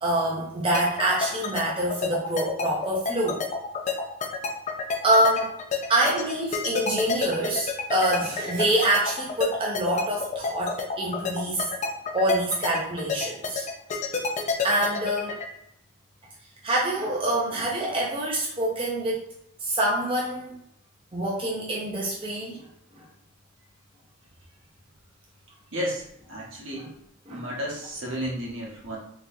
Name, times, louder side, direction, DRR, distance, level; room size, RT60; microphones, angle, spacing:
voice 1, 0.0-3.5 5.0-5.5 5.9-11.7 12.1-13.7 14.6-15.4 16.6-19.2 19.6-20.6 21.1-22.6 22.9-23.1 26.7-26.9 27.3-27.5, right 1 dB, 25° right, -4 dB, 0.5 m, -26 dB
sound 1, 0.7-15.5, left 5 dB, 35° left, 0.4 m, -28 dB
voice 2, 25.7-26.0 26.3-26.9 27.3-29.0, equal, 70° right, -3 dB, 1.1 m, -32 dB
3.9 x 2.8 x 2.6 m, 0.75 s
head